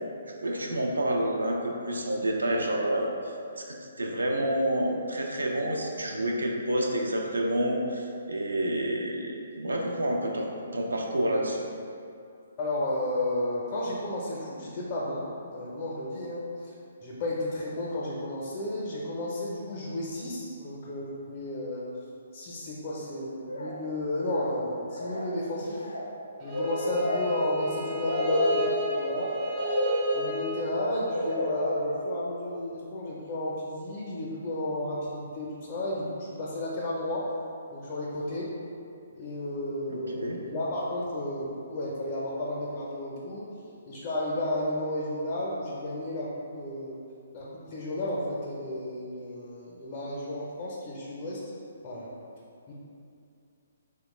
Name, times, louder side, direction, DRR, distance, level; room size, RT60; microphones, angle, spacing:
voice 1, 0.3-3.6 4.0-10.5 10.7-11.7 39.9-40.4, right 1 dB, 90° right, 0 dB, 0.4 m, -29 dB
voice 2, 12.6-16.7 17.0-21.8 22.3-25.8 26.4-29.3 30.1-37.3 37.7-38.5 39.1-43.5 43.9-47.0 47.3-51.4 51.8-52.1 52.7-52.8, left 1 dB, 30° left, -6 dB, 0.5 m, -32 dB
sound 1, 23.5-23.9 24.2-24.6 24.9-32.5, equal, 90° left, 0.4 m, -31 dB
Bowed string instrument, 26.4-31.4, equal, 25° right, 0.4 m, -36 dB
2.9 x 2.0 x 3.0 m, 2.5 s
hypercardioid pair, 140°, 0 cm